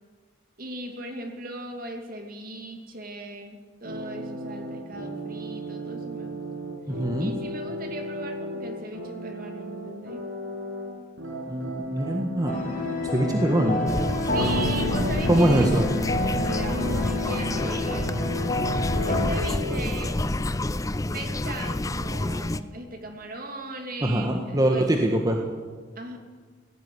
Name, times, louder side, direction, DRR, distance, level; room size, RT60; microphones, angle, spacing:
voice 1, 0.6-6.4 7.2-10.2 14.3-15.7 16.3-18.1 19.1-20.2 21.1-24.9 26.0-26.2, right 2 dB, 45° right, 3 dB, 2.9 m, -38 dB
sound 1, 3.8-10.9 11.2-19.8, equal, 80° right, 7.1 m, -35 dB
voice 2, 6.9-7.3 11.5-12.5 13.1-13.8 15.3-15.9 24.0-25.4, right 1 dB, 20° right, 2 dB, 1.6 m, -23 dB
sound 2, 12.5-19.3, left 2 dB, 40° left, 4.9 m, -28 dB
sound 3, 13.9-22.6, left 1 dB, 15° left, 0.6 m, -29 dB
17.5 x 16.0 x 9.9 m, 1.5 s
head